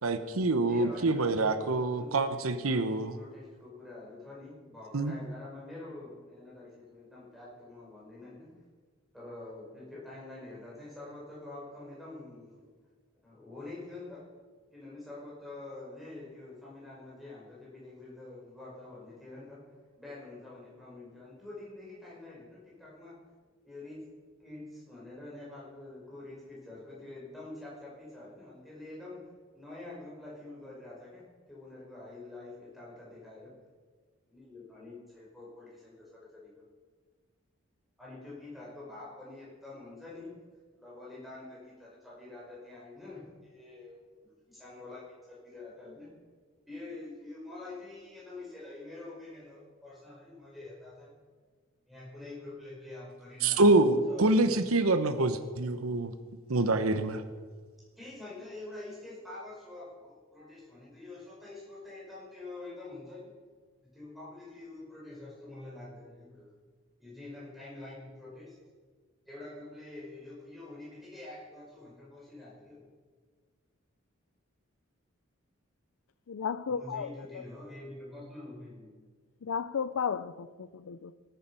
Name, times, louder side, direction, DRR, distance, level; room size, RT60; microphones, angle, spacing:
voice 1, 0.0-3.2 4.9-5.1 53.4-56.1 56.5-57.2, right 2 dB, 90° right, 10 dB, 0.9 m, -26 dB
voice 2, 0.7-8.5 9.1-12.7 13.2-14.2 14.7-19.6 20.0-23.2 23.6-24.0 24.4-29.2 29.5-33.5 34.3-36.6 38.0-40.3 40.8-46.1 46.7-51.1 51.9-54.6 55.3-55.4 58.0-63.3 63.8-66.5 67.0-68.5 69.3-72.8 76.7-78.9, left 2 dB, ahead, -6 dB, 5.3 m, -46 dB
voice 3, 76.3-77.1 79.5-80.5 80.9-81.1, left 6 dB, 75° left, 16 dB, 0.5 m, -33 dB
18.0 x 9.4 x 5.7 m, 1.5 s
head